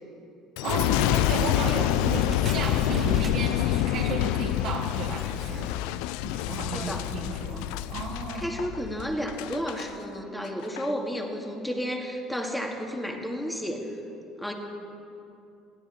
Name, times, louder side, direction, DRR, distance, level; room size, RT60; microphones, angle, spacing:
Boom, 0.6-9.9 10.4-10.9, left 15 dB, 85° left, 0.3 m, -27 dB
voice 1, 0.6-8.5, right 4 dB, 65° right, -3 dB, 1.7 m, -33 dB
sound 1, 1.8-6.8, right 5 dB, 35° right, 1.0 m, -43 dB
voice 2, 6.7-7.0 8.3-13.9 14.4-14.5, equal, 5° left, 1 dB, 2.1 m, -32 dB
20.5 x 14.0 x 4.2 m, 2.7 s
supercardioid pair, 95°, 0 cm